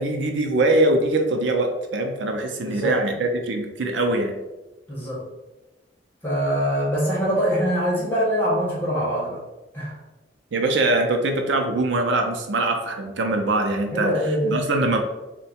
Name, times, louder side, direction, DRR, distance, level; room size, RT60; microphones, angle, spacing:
voice 1, 0.0-4.3 10.5-15.0, right 2 dB, 85° right, 4 dB, 0.5 m, -22 dB
voice 2, 2.6-3.0 4.9-5.2 6.2-9.4 9.7-10.0 13.9-14.5, equal, 10° left, -7 dB, 1.2 m, -23 dB
3.7 x 2.2 x 4.2 m, 1.0 s
head